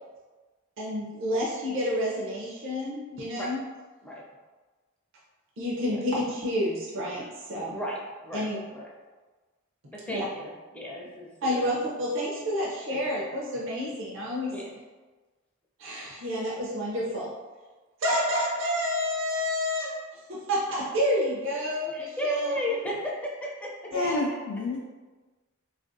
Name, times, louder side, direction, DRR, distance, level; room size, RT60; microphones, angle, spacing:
voice 1, 0.8-3.6 5.6-7.7 8.3-8.6 10.1-10.2 11.4-14.5 15.8-17.3 18.0-20.0 20.3-22.6 23.9-24.1, equal, 65° right, -4 dB, 0.6 m, -29 dB
voice 2, 7.7-8.8 9.9-11.7 12.9-13.3 14.5-14.7 21.9-23.9, equal, 5° left, -4 dB, 0.4 m, -34 dB
voice 3, 23.9-24.8, left 2 dB, 70° left, -2 dB, 0.4 m, -29 dB
3.5 x 2.4 x 2.5 m, 1.3 s
head